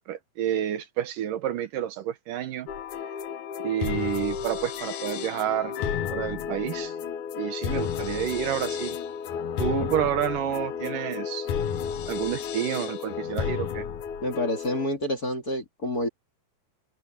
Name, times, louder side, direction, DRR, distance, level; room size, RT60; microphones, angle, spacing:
voice 1, 0.1-2.7 3.6-5.7 6.1-6.9 7.4-9.0 9.6-11.5 12.1-13.9, right 11 dB, 70° right, 2.6 m, -29 dB
sound 1, 2.7-14.9, left 7 dB, 65° left, 2.4 m, -32 dB
voice 2, 14.2-16.1, left 1 dB, 25° left, 2.8 m, -28 dB
omnidirectional pair, 4.1 m